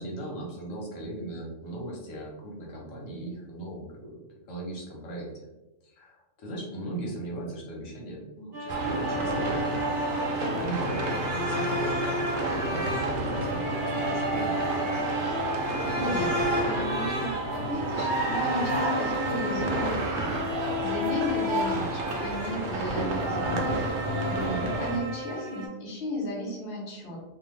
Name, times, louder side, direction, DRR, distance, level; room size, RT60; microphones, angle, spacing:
voice 1, 0.0-5.5 5.8-9.4 10.0-15.1 24.1-24.7, right 1 dB, 85° left, -2 dB, 1.2 m, -38 dB
sound 1, 8.5-25.7, left 1 dB, 55° right, 0.8 m, -33 dB
sound 2, 8.7-25.0, right 2 dB, 90° right, 1.0 m, -30 dB
voice 2, 15.9-23.9 24.5-27.2, equal, 50° left, -4 dB, 0.9 m, -35 dB
2.6 x 2.1 x 3.1 m, 1.0 s
omnidirectional pair, 1.3 m